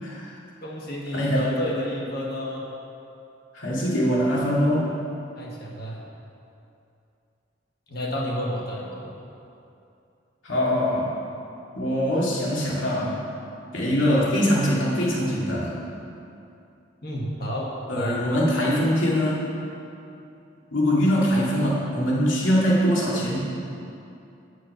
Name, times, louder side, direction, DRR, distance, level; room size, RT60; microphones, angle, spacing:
voice 1, 0.0-0.4 1.1-1.5 3.5-4.9 10.4-11.1 11.7-13.2 13.7-15.8 17.9-19.5 20.7-23.4, equal, 85° left, -6 dB, 2.3 m, -23 dB
voice 2, 0.6-2.7 5.3-6.0 7.9-9.1 17.0-18.2, equal, 50° left, -3 dB, 1.7 m, -30 dB
9.7 x 6.4 x 5.8 m, 2.6 s
head